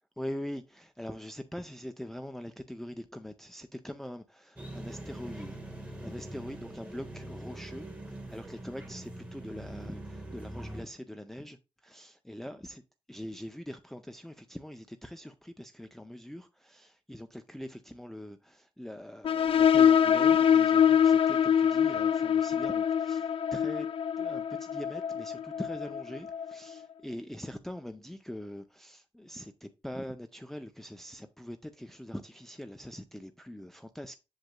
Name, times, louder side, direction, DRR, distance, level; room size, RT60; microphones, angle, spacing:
voice 1, 0.2-12.8 13.1-23.9 24.2-34.2, equal, 5° left, 0.4 m, -43 dB
sound 1, 4.6-10.8, right 1 dB, 15° right, 1.4 m, -43 dB
sound 2, 19.2-26.5, left 8 dB, 60° left, 0.4 m, -24 dB
7.7 x 6.4 x 2.2 m
wide cardioid pair, 130°, 11 cm